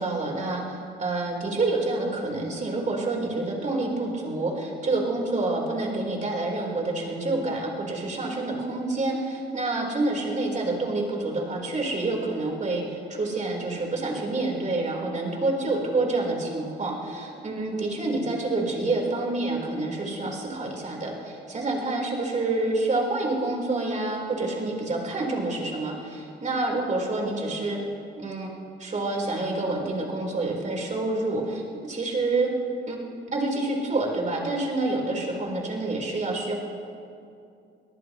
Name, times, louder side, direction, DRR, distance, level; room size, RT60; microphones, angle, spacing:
voice 1, 0.0-27.8 28.1-28.5 28.8-32.5 32.9-33.0 33.3-36.5, right 2 dB, 40° right, -1 dB, 4.1 m, -28 dB
23.5 x 18.5 x 3.1 m, 2.5 s
cardioid pair, 90°, 20 cm